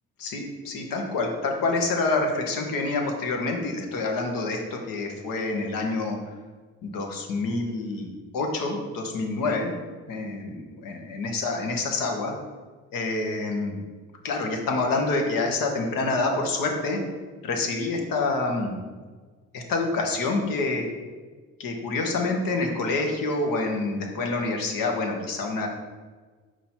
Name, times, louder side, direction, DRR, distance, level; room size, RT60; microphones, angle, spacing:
voice 1, 0.2-6.2 6.8-9.7 10.1-12.4 12.9-13.8 14.2-17.0 17.4-18.7 19.5-20.9 21.6-25.7, left 3 dB, 75° left, 2 dB, 1.2 m, -27 dB
5.3 x 4.5 x 4.4 m, 1.4 s
supercardioid pair, 70°, 34 cm